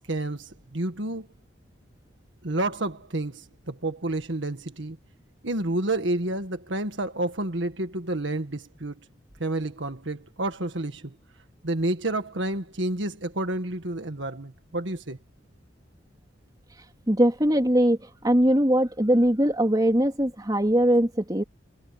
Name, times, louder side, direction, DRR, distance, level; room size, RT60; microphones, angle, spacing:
voice 1, 0.1-1.3 2.4-5.0 5.4-8.9 9.4-11.2 11.6-15.2, right 2 dB, 70° right, 1.7 m, -29 dB
voice 2, 17.1-18.0 18.2-21.4, equal, 20° right, 3.5 m, -21 dB
head